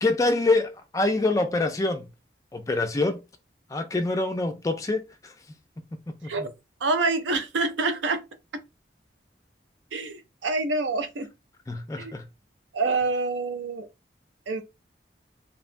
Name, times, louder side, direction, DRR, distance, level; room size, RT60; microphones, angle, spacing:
voice 1, 0.0-2.1 2.5-3.2 3.7-5.3 6.2-6.5 11.7-12.3, left 2 dB, 20° left, 0.3 m, -25 dB
voice 2, 6.8-8.2 9.9-11.3 12.0-12.1 12.7-13.9 14.5-14.6, right 3 dB, 85° right, 0.5 m, -26 dB
2.9 x 2.1 x 2.5 m
head